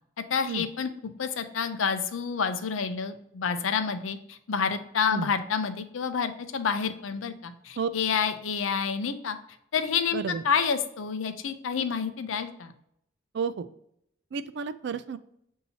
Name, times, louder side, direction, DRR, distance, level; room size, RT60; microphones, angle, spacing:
voice 1, 0.3-0.9 1.2-9.4 9.7-12.7, left 6 dB, 75° left, 9 dB, 0.5 m, -29 dB
voice 2, 10.1-10.4 13.3-13.7 14.3-15.2, right 5 dB, 55° right, 12 dB, 0.3 m, -31 dB
6.9 x 2.7 x 2.8 m, 0.73 s
head